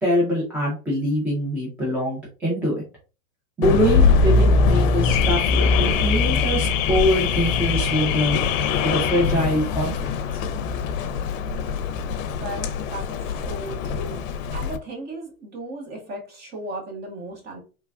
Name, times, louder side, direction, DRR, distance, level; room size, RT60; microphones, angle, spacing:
voice 1, 0.0-2.8 3.6-8.4 8.8-10.4, equal, 5° right, 0.3 m, -24 dB
Car / Alarm, 3.6-14.8, left 4 dB, 65° left, 0.6 m, -22 dB
voice 2, 12.3-17.6, right 2 dB, 25° right, 0.8 m, -36 dB
3.2 x 2.3 x 2.3 m
supercardioid pair, 140°, 42 cm